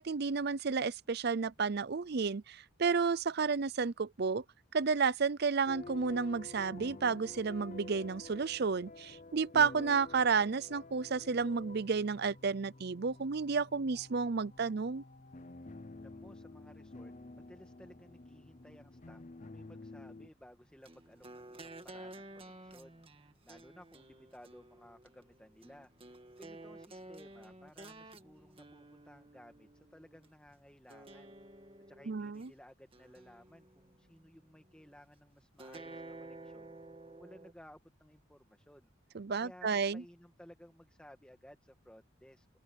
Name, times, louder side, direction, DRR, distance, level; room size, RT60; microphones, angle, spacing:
voice 1, 0.0-4.4 4.7-15.0 32.1-32.5 39.1-40.0, right 5 dB, 50° right, 0.6 m, -31 dB
sound 1, 5.7-20.3, left 2 dB, 35° left, 0.7 m, -50 dB
voice 2, 16.0-31.4 31.9-36.8 37.1-38.9 39.4-42.6, equal, 5° left, 1.9 m, -58 dB
sound 2, 20.9-30.3 30.9-32.5 32.9-34.0 35.6-37.5, right 2 dB, 25° right, 1.9 m, -52 dB
head